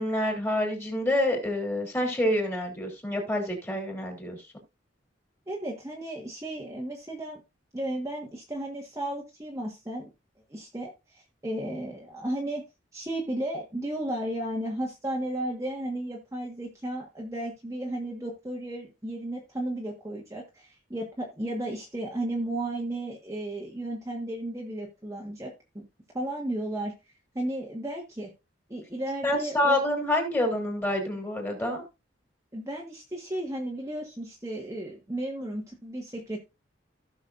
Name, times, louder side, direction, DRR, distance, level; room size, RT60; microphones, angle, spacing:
voice 1, 0.0-4.4 29.2-31.8, left 1 dB, 10° left, 3.3 m, -27 dB
voice 2, 5.5-7.4 7.7-10.1 10.5-12.6 12.9-25.8 26.1-26.9 27.3-28.3 28.7-29.8 32.5-36.4, right 1 dB, 15° right, 1.5 m, -34 dB
16.0 x 6.3 x 2.5 m
head